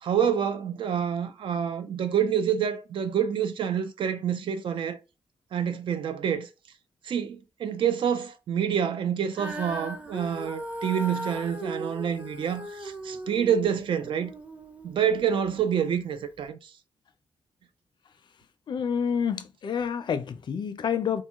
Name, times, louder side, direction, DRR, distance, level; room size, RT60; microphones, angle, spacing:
voice 1, 0.0-5.0 5.5-6.5 7.0-14.3 14.8-16.7, right 8 dB, 65° right, 0.4 m, -27 dB
Female singing, 9.3-15.7 16.4-16.5, right 1 dB, 15° right, 0.6 m, -38 dB
voice 2, 18.7-21.2, left 7 dB, 55° left, 0.4 m, -28 dB
2.5 x 2.2 x 2.8 m
cardioid pair, 100°, 9 cm